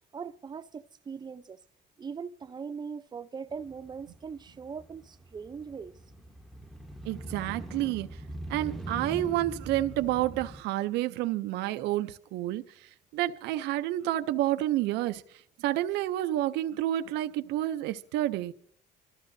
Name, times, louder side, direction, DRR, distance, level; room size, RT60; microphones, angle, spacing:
voice 1, 0.1-1.6 2.0-5.9, right 6 dB, 25° right, 0.5 m, -40 dB
Motorcycle, 3.5-10.6, right 1 dB, ahead, 0.8 m, -42 dB
voice 2, 7.0-8.2 8.5-18.5, right 14 dB, 85° right, 0.5 m, -30 dB
26.5 x 13.5 x 2.6 m
cardioid pair, 110°, 17 cm